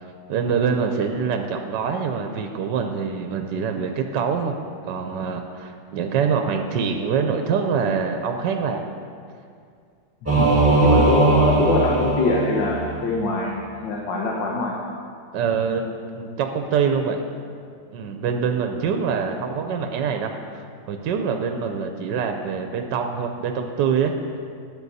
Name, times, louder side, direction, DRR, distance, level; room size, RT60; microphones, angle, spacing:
voice 1, 0.3-4.5 4.8-8.8 15.3-17.2 17.9-24.1, right 6 dB, 75° right, 5 dB, 1.3 m, -25 dB
voice 2, 10.2-14.7, left 2 dB, 90° left, -2 dB, 1.8 m, -23 dB
Singing / Musical instrument, 10.2-13.1, right 3 dB, 10° right, 1.2 m, -20 dB
13.0 x 9.1 x 4.1 m, 2.3 s
omnidirectional pair, 2.0 m